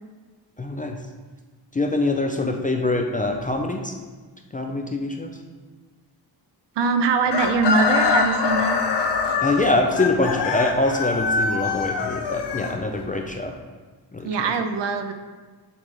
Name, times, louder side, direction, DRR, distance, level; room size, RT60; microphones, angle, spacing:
voice 1, 0.6-1.0 1.7-3.9 4.5-5.4 9.4-13.5 14.1-14.5, left 2 dB, 20° left, 3 dB, 0.3 m, -24 dB
voice 2, 6.8-8.8 14.2-15.1, right 4 dB, 70° right, 8 dB, 0.6 m, -22 dB
Chicken rooster, 7.3-13.2, left 4 dB, 65° left, 0.7 m, -24 dB
6.9 x 3.2 x 5.1 m, 1.4 s
wide cardioid pair, 160°, 43 cm